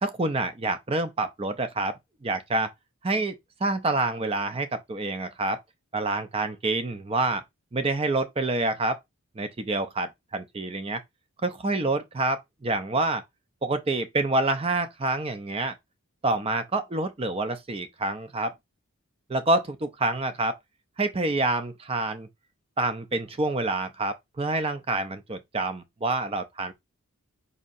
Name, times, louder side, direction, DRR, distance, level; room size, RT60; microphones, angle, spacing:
voice 1, 0.0-2.7 3.0-3.3 3.6-5.6 5.9-7.4 7.7-9.0 9.4-11.0 11.4-13.2 13.6-15.8 16.2-18.5 19.3-20.6 21.0-22.3 22.8-26.7, right 2 dB, 25° right, 0.5 m, -27 dB
5.4 x 2.8 x 2.5 m
head